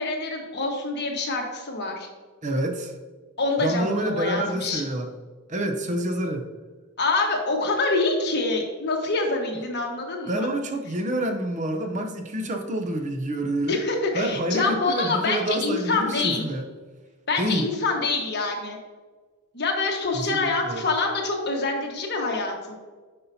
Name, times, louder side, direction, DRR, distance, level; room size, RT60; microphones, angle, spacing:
voice 1, 0.0-2.1 3.4-4.8 7.0-10.5 13.7-16.5 17.3-18.8 19.5-22.7, left 3 dB, 50° left, 1 dB, 1.3 m, -26 dB
voice 2, 2.4-3.0 3.6-5.1 5.5-6.5 10.3-13.8 14.1-16.6 17.4-17.7 20.1-20.8, right 1 dB, 35° right, 3 dB, 0.6 m, -27 dB
9.7 x 5.4 x 2.7 m, 1.4 s
head